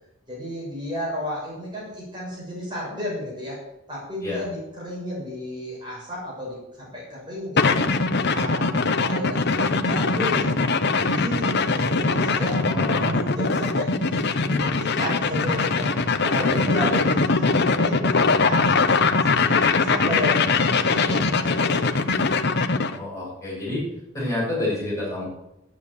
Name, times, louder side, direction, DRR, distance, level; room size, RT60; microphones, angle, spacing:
voice 1, 0.3-3.6 3.9-7.9 8.3-10.6 11.1-18.7 19.2-21.9, left 1 dB, 25° right, -5 dB, 6.6 m, -32 dB
sound 1, 7.6-23.0, left 4 dB, 55° left, 0.9 m, -21 dB
voice 2, 12.5-13.2 16.3-17.0 21.0-21.3 22.9-23.8 24.1-25.2, left 2 dB, 15° left, -6 dB, 6.9 m, -29 dB
12.0 x 9.5 x 8.6 m, 0.88 s
head